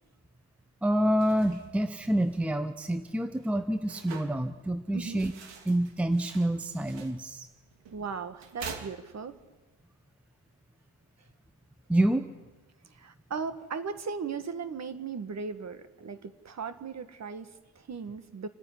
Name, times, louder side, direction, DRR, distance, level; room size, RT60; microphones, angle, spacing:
voice 1, 0.8-5.3 5.6-7.5 11.9-12.3, right 1 dB, 5° right, 9 dB, 0.9 m, -27 dB
sound 1, 1.0-9.6, right 5 dB, 60° right, 2.9 m, -48 dB
voice 2, 4.9-5.2 7.9-9.4 12.9-18.5, right 5 dB, 30° right, 11 dB, 1.5 m, -37 dB
28.5 x 9.7 x 9.8 m, 1.2 s
cardioid pair, 115°, 50 cm